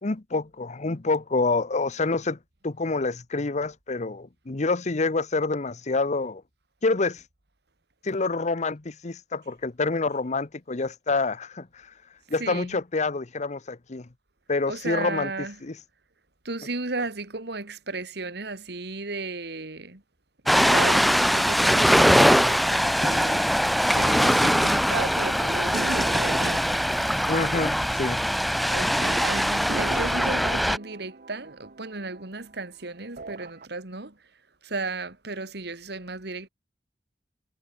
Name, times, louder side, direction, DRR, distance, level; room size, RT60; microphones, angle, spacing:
voice 1, 0.0-2.4 2.6-6.4 6.8-7.2 8.0-11.9 12.3-14.1 14.5-15.3 15.6-15.7 27.3-28.3 30.2-30.3, left 3 dB, 40° left, 0.9 m, -27 dB
voice 2, 12.4-12.8 14.7-15.6 16.4-20.0 20.4-26.8 28.7-34.2 34.6-36.5, right 3 dB, 70° right, 2.5 m, -34 dB
Ocean, 20.5-30.8, equal, ahead, 0.8 m, -22 dB
sound 1, 25.7-28.8 29.1-29.2 29.7-32.6 33.0-33.7, right 2 dB, 50° right, 1.0 m, -39 dB
head